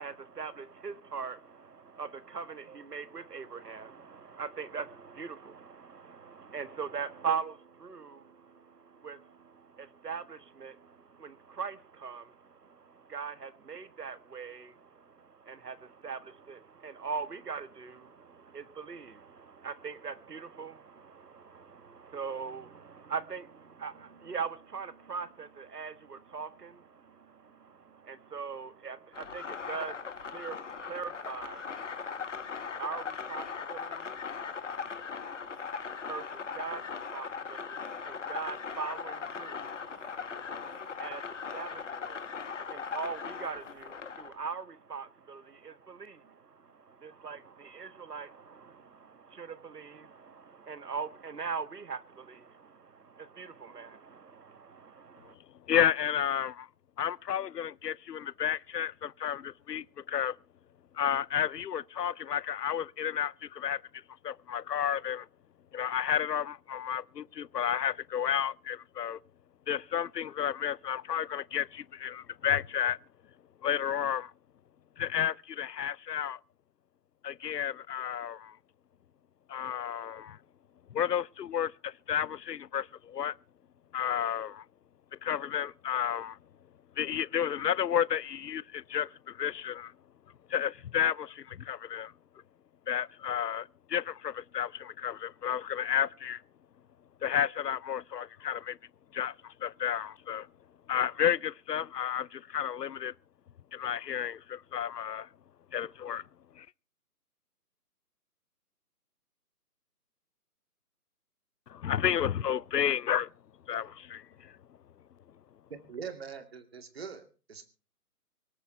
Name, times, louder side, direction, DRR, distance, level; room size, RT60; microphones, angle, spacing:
voice 1, 0.0-55.4, right 5 dB, 75° right, 1.5 m, -41 dB
sound 1, 29.1-44.3, left 6 dB, 50° left, 1.3 m, -39 dB
voice 2, 55.7-56.7 57.0-60.3 61.0-63.8 64.2-65.2 65.7-69.2 69.7-73.0 73.6-74.3 75.0-76.4 77.2-78.5 79.5-80.4 80.9-83.3 83.9-84.6 85.2-86.4 87.0-89.1 89.4-89.9 90.5-92.1 92.9-96.4 97.2-98.8 99.1-99.3 99.6-100.5 100.9-103.1 103.7-105.3 105.7-106.2 111.7-113.3 113.7-114.2, left 9 dB, 90° left, 0.6 m, -31 dB
voice 3, 115.7-117.7, right 6 dB, 40° right, 2.3 m, -43 dB
25.0 x 8.4 x 4.5 m
figure-of-eight pair, 165°, 47 cm